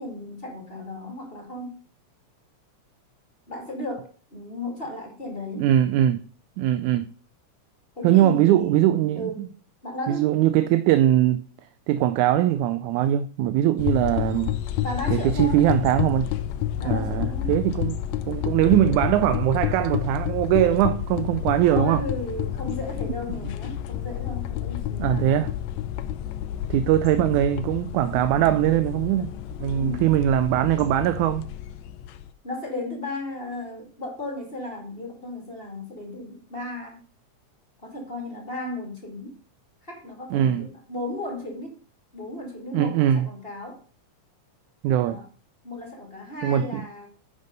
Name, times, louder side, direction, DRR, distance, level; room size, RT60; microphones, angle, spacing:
voice 1, 0.0-1.7 3.5-5.7 8.0-8.8 9.2-9.5 9.8-10.3 14.8-15.7 16.8-17.5 21.7-25.5 29.6-30.0 32.4-37.0 37.8-39.3 39.8-41.8 42.1-43.8 45.0-45.3 45.6-47.1, left 1 dB, 20° left, 1.9 m, -35 dB
voice 2, 5.6-6.2 6.6-7.1 8.0-9.5 10.1-11.5 11.9-14.5 15.1-16.3 16.8-18.0 18.3-22.0 25.0-25.5 26.7-29.3 29.6-31.5 40.3-40.7 42.7-43.3 44.8-45.2 46.4-46.8, right 12 dB, 80° right, 2.0 m, -21 dB
sound 1, 13.8-32.3, left 12 dB, 75° left, 1.8 m, -30 dB
10.5 x 5.3 x 5.3 m
omnidirectional pair, 3.5 m